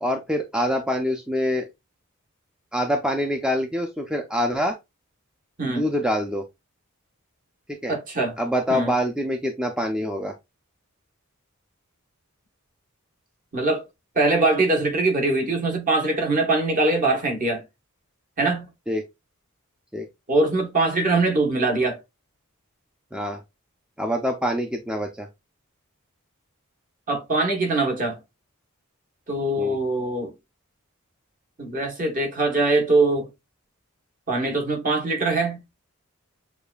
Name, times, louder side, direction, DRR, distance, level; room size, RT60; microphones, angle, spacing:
voice 1, 0.0-1.7 2.7-4.7 5.7-6.4 7.7-7.9 8.4-10.3 18.9-19.0 19.9-20.1 23.1-23.4 24.0-25.3 29.6-29.8, equal, 5° right, 0.4 m, -25 dB
voice 2, 7.9-8.3 8.7-8.9 13.5-13.8 14.1-17.6 18.4-18.6 20.3-22.0 27.1-28.2 29.3-30.3 31.6-33.3 34.3-35.6, right 2 dB, 40° right, 1.1 m, -22 dB
6.8 x 2.4 x 2.3 m
head